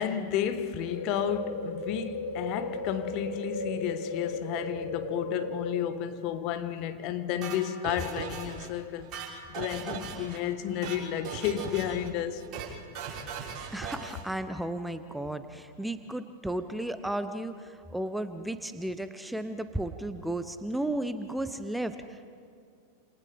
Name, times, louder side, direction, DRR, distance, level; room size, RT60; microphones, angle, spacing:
voice 1, 0.0-12.4, left 10 dB, 40° left, 1.4 m, -32 dB
sound 1, 0.8-5.8, left 2 dB, 80° left, 4.6 m, -36 dB
sound 2, 7.4-8.7 9.0-10.4 10.7-11.0 11.2-12.1 12.4-12.7 12.9-14.2, right 6 dB, 35° right, 6.4 m, -38 dB
voice 2, 13.7-22.3, right 1 dB, 5° right, 0.8 m, -34 dB
30.0 x 28.0 x 3.5 m
figure-of-eight pair, 90°, 0 cm